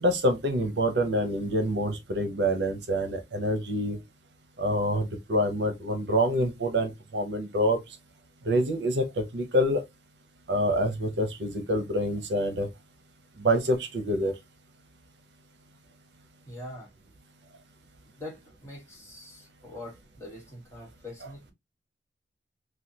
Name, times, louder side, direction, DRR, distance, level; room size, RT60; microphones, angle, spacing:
voice 1, 0.0-4.0 4.6-7.8 8.4-9.8 10.5-12.7 13.4-14.3, equal, 70° right, 0.7 m, -26 dB
voice 2, 16.5-16.9 18.2-21.5, left 1 dB, 15° left, 1.4 m, -43 dB
3.2 x 2.2 x 2.7 m
head